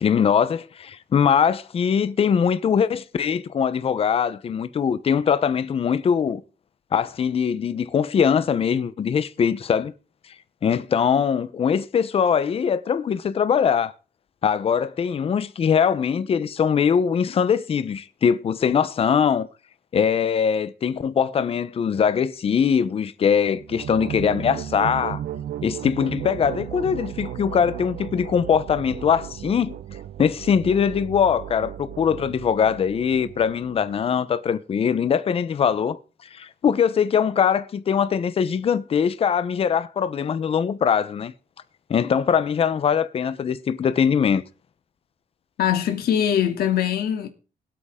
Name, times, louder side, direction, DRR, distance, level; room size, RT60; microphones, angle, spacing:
voice 1, 0.0-6.4 6.9-9.9 10.6-13.9 14.4-19.5 19.9-25.2 25.6-29.8 30.2-36.0 36.3-41.3 41.9-44.4, left 7 dB, 40° left, 0.8 m, -22 dB
sound 1, 23.5-34.2, right 11 dB, 70° right, 1.1 m, -35 dB
voice 2, 45.6-47.3, left 9 dB, 80° left, 2.8 m, -22 dB
23.5 x 8.5 x 3.8 m
cardioid pair, 155°, 16 cm